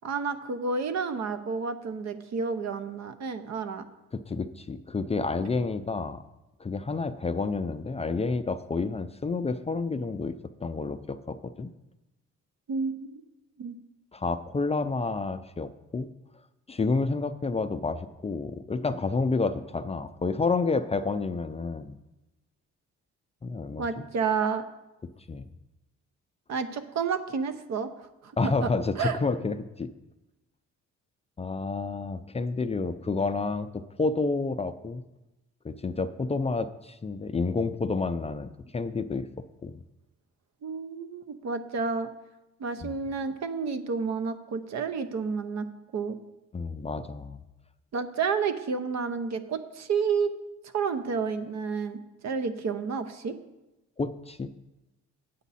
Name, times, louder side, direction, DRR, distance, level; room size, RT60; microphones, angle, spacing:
voice 1, 0.0-3.8 12.7-13.2 13.6-13.7 23.8-24.6 26.5-28.7 29.0-29.2 40.6-42.1 42.6-45.7 45.9-46.2 47.9-50.3 50.7-53.4, right 5 dB, 60° right, 10 dB, 0.9 m, -30 dB
voice 2, 4.1-6.2 6.6-10.4 10.6-11.7 14.1-16.1 16.7-22.0 23.4-24.1 25.3-25.4 28.4-29.9 31.4-35.0 35.6-39.3 39.6-39.7 42.8-43.0 46.5-47.4 54.0-54.5, left 3 dB, 20° left, 10 dB, 0.4 m, -29 dB
9.1 x 8.1 x 4.2 m, 1.0 s
cardioid pair, 90°, 30 cm